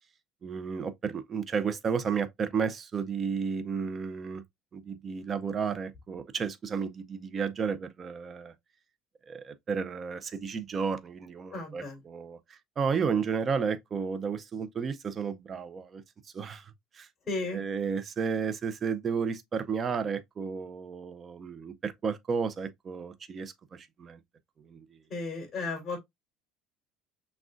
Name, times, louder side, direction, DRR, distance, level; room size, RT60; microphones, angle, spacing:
voice 1, 0.4-4.4 4.7-8.5 9.3-16.0 16.3-17.1 17.5-24.2 24.6-24.9, right 6 dB, 30° right, 0.5 m, -32 dB
voice 2, 11.5-12.0 17.3-17.6 25.1-26.0, left 3 dB, 30° left, 2.9 m, -34 dB
6.1 x 2.3 x 2.4 m
cardioid pair, 145°, 0 cm